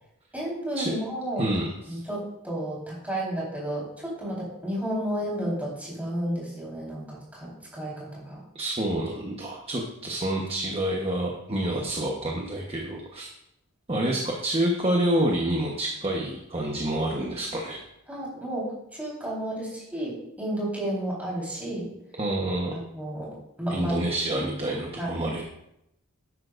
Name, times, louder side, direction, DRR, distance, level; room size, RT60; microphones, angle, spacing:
voice 1, 0.3-1.5 1.9-8.4 14.0-14.1 18.1-21.9 22.7-23.3 23.6-24.0 24.3-24.6 25.0-25.2, right 1 dB, 5° right, -5 dB, 4.2 m, -32 dB
voice 2, 1.4-2.0 8.5-13.3 13.9-17.8 22.2-22.7 23.7-25.4, right 1 dB, 25° right, -1 dB, 1.2 m, -28 dB
13.0 x 10.5 x 2.6 m, 0.81 s
head